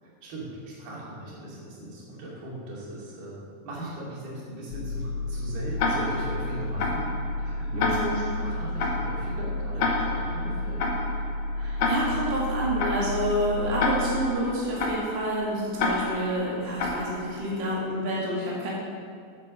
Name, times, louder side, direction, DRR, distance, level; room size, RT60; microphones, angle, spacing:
voice 1, 0.0-3.4 3.6-10.9, right 1 dB, 90° right, -5 dB, 4.5 m, -39 dB
sound 1, 4.7-14.3, left 1 dB, 80° left, 2.2 m, -32 dB
Tick-tock, 5.8-17.6, left 3 dB, 60° left, 2.1 m, -31 dB
voice 2, 7.7-8.1 11.6-18.7, right 1 dB, 20° right, -5 dB, 1.8 m, -28 dB
9.3 x 8.3 x 6.4 m, 2.3 s
omnidirectional pair, 4.2 m